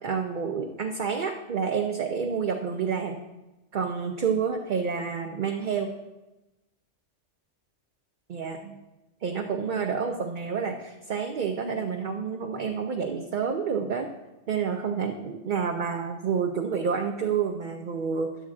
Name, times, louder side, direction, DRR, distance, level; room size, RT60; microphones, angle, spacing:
voice 1, 0.0-3.2 3.7-5.9 8.3-8.8 9.2-14.1 14.5-18.3, right 6 dB, 50° right, 3 dB, 0.6 m, -29 dB
11.0 x 3.7 x 7.5 m, 1.0 s
omnidirectional pair, 1.2 m